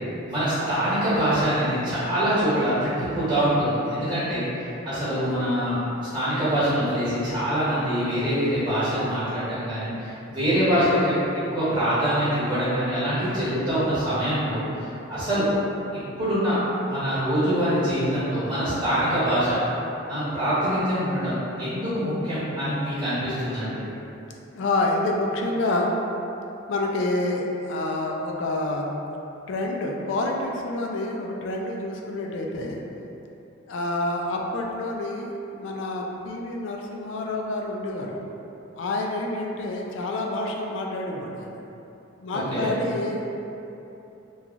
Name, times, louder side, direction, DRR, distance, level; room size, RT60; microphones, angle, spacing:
voice 1, 0.3-4.5 4.8-5.8 6.1-11.1 11.5-14.6 15.1-15.4 16.2-16.6 16.8-19.6 20.1-23.8 42.3-42.7, equal, 25° right, -15 dB, 1.2 m, -24 dB
voice 2, 24.5-25.9 26.7-28.9 29.5-32.8 33.7-38.2 38.8-41.6 42.2-43.2, left 2 dB, 65° left, 0 dB, 0.3 m, -28 dB
3.0 x 2.3 x 2.4 m, 2.9 s
head